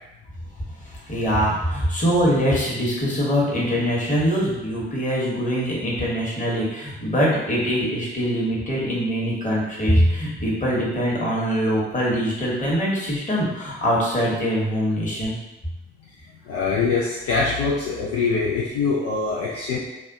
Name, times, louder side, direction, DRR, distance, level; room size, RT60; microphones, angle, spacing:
voice 1, 1.1-15.4, equal, 25° left, -5 dB, 1.3 m, -23 dB
voice 2, 16.4-19.8, left 4 dB, 60° left, -6 dB, 0.6 m, -23 dB
4.1 x 2.3 x 2.7 m, 0.99 s
figure-of-eight pair, 40°, 29 cm